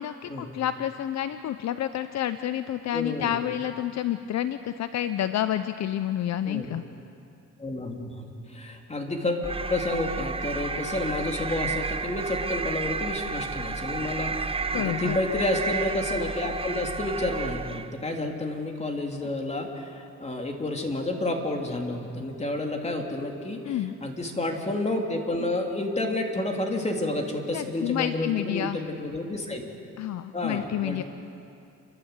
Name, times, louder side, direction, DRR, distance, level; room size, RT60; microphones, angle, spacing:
voice 1, 0.0-6.8 14.7-15.2 23.6-24.0 27.5-28.8 30.0-31.0, left 11 dB, 60° left, 11 dB, 0.7 m, -29 dB
voice 2, 2.9-3.4 6.4-6.6 7.6-29.6 30.3-31.0, left 2 dB, 20° left, 2 dB, 3.2 m, -30 dB
sound 1, 9.4-18.0, right 4 dB, 20° right, 0.7 m, -32 dB
29.5 x 12.0 x 8.3 m, 2.6 s
cardioid pair, 90°, 30 cm